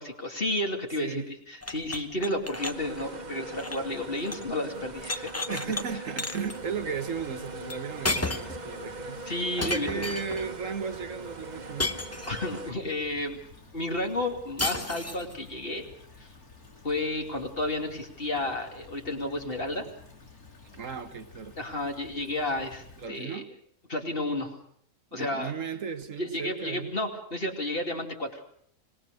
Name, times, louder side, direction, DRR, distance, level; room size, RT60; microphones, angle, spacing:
voice 1, 0.0-5.3 9.3-10.1 12.2-13.4 13.7-15.8 16.2-16.3 16.8-19.8 21.6-23.4 23.9-24.6 25.1-25.5 26.2-28.5, left 1 dB, 40° left, 2.8 m, -32 dB
sound 1, 1.6-4.5 4.8-5.8 6.2-6.6 7.7-7.8 8.0-8.6 9.6-10.5 11.8-12.6 14.6-15.3, left 2 dB, 15° left, 0.7 m, -33 dB
sound 2, 2.5-12.7, right 2 dB, 35° right, 1.0 m, -41 dB
voice 2, 5.5-9.2 9.6-11.9 20.7-21.6 23.0-23.5 25.1-26.9, right 6 dB, 60° right, 1.5 m, -35 dB
Stream / Trickle dribble, 6.3-23.1, left 3 dB, 75° left, 3.5 m, -52 dB
25.5 x 19.5 x 6.5 m
omnidirectional pair, 1.6 m